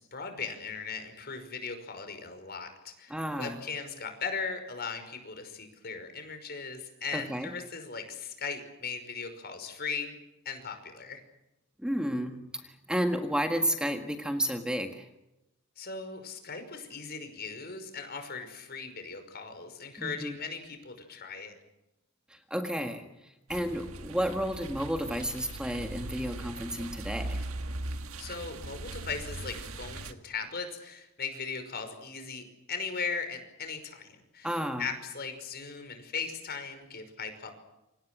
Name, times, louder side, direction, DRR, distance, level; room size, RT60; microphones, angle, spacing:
voice 1, 0.0-10.1 10.5-11.2 15.8-21.6 28.2-37.5, left 5 dB, 45° left, 7 dB, 5.5 m, -38 dB
voice 2, 3.1-3.6 7.1-7.5 11.8-15.1 20.0-20.4 22.3-27.4 34.4-34.9, equal, 5° right, 5 dB, 1.6 m, -32 dB
sound 1, 23.5-30.1, right 2 dB, 75° right, 1.8 m, -39 dB
28.5 x 26.0 x 6.3 m, 0.93 s
head